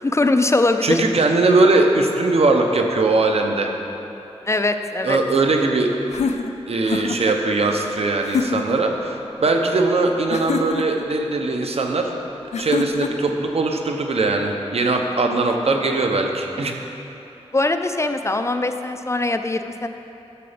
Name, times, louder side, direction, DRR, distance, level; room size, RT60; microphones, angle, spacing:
voice 1, 0.0-1.0 4.5-5.2 17.5-19.9, left 2 dB, 25° left, 7 dB, 0.4 m, -21 dB
voice 2, 0.8-3.7 5.0-6.0 6.7-12.1 12.6-16.8, right 3 dB, 65° right, 3 dB, 0.9 m, -20 dB
sound 1, 6.1-7.4 8.2-8.8 10.3-11.1 12.5-13.3, left 5 dB, 85° left, 0.4 m, -26 dB
11.5 x 6.8 x 5.1 m, 3.0 s
wide cardioid pair, 95°, 11 cm